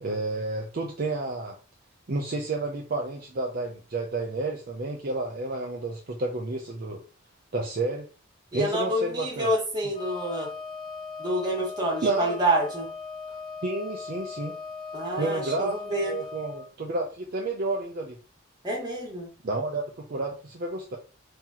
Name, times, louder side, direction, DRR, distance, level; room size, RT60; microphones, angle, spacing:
voice 1, 0.0-1.6 2.1-7.0 7.5-8.1 8.5-9.5 12.0-12.4 13.6-14.6 15.1-15.8 16.1-18.2 19.4-21.0, right 2 dB, 45° right, 1 dB, 0.5 m, -30 dB
voice 2, 8.5-10.5 11.2-12.9 14.9-16.2 18.6-19.3, right 1 dB, 20° right, -2 dB, 1.4 m, -28 dB
Wind instrument woodwind instrument, 9.9-16.7, left 5 dB, 25° left, 1.0 m, -38 dB
3.8 x 2.9 x 2.8 m, 0.36 s
head